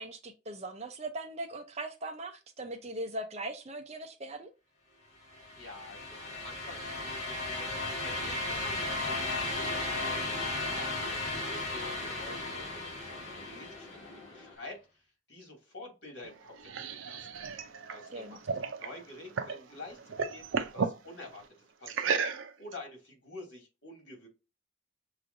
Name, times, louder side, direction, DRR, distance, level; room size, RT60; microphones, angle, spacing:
voice 1, 0.0-4.5 18.1-18.4, right 2 dB, 35° right, 7 dB, 0.6 m, -40 dB
sound 1, 5.3-14.2, left 2 dB, 35° left, 2.0 m, -35 dB
voice 2, 5.6-10.3 10.7-14.8 15.3-17.4 17.9-21.4 21.8-24.3, left 2 dB, 60° left, 0 dB, 2.4 m, -48 dB
sound 2, 9.4-14.6, left 3 dB, 15° left, 1.3 m, -49 dB
sound 3, 16.2-19.6 19.9-21.0 21.9-22.7, right 5 dB, 80° right, 0.5 m, -34 dB
6.6 x 3.1 x 2.6 m, 0.28 s
head